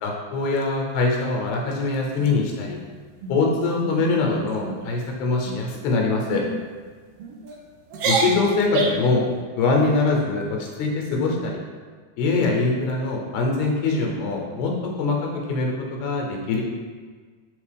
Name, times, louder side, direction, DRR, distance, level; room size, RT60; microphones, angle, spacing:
voice 1, 0.0-2.8 3.3-6.4 8.0-9.2 9.6-11.6 12.2-14.7 15.0-16.6, left 3 dB, 80° left, 0 dB, 2.0 m, -23 dB
sound 1, 2.2-2.8 3.2-3.5 3.8-4.1 4.5-4.8 5.4-5.8 6.3-6.5 7.2-7.6 7.9-9.1, right 3 dB, 80° right, 1.3 m, -27 dB
4.3 x 3.3 x 3.3 m, 1.5 s
omnidirectional pair, 3.4 m